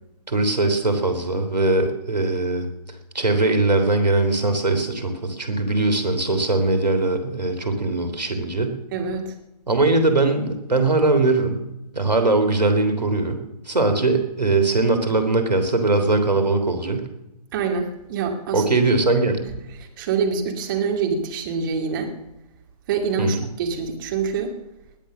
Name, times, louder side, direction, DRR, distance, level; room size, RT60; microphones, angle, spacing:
voice 1, 0.3-2.7 3.2-8.8 9.7-11.7 11.9-17.1 18.5-19.4 23.2-23.5, right 2 dB, 80° right, 7 dB, 3.3 m, -21 dB
voice 2, 8.9-9.3 17.5-18.6 19.4-19.5 20.0-22.1 22.9-24.5, right 5 dB, 30° right, 3 dB, 2.4 m, -25 dB
20.0 x 8.8 x 6.2 m, 0.90 s
figure-of-eight pair, 140°, 21 cm